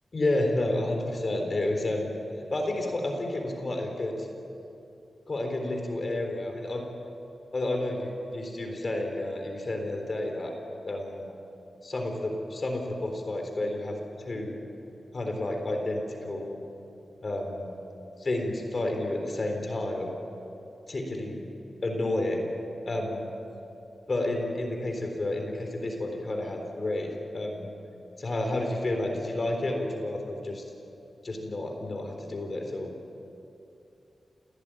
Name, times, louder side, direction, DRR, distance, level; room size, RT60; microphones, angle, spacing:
voice 1, 0.1-2.1 2.5-4.3 5.3-6.8 7.5-10.5 10.8-11.3 11.8-14.6 15.1-16.6 17.2-17.7 18.2-20.1 20.9-21.4 21.8-22.5 22.9-23.3 24.1-27.7 28.2-30.6 31.2-32.9, left 1 dB, 40° left, 3 dB, 4.0 m, -30 dB
28.5 x 17.5 x 9.0 m, 2.7 s
wide cardioid pair, 130°, 0 cm